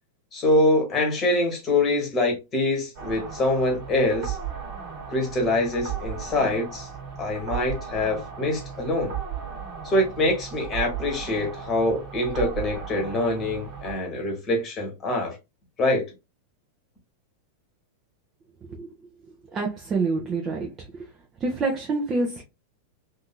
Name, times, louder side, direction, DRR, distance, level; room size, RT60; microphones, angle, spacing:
voice 1, 0.3-4.4 5.1-6.9 7.2-9.2 9.8-15.4 15.8-16.1, left 2 dB, 30° left, 1.1 m, -24 dB
sound 1, 3.0-14.0, right 7 dB, 45° right, 1.2 m, -35 dB
voice 2, 19.5-20.7 21.4-22.4, right 3 dB, 25° right, 0.6 m, -26 dB
2.8 x 2.6 x 2.2 m
figure-of-eight pair, 90°, 0 cm